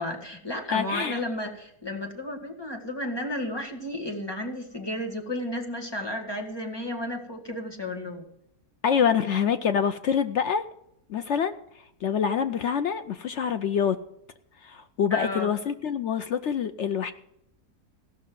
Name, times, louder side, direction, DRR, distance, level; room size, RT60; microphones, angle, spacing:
voice 1, 0.0-8.3 15.1-15.5, left 1 dB, 15° left, 2 dB, 1.8 m, -33 dB
voice 2, 0.7-1.2 8.8-10.6 11.1-11.6 12.0-14.0 14.6-17.1, left 7 dB, 65° left, 10 dB, 0.7 m, -26 dB
16.0 x 6.1 x 7.6 m, 0.76 s
omnidirectional pair, 1.7 m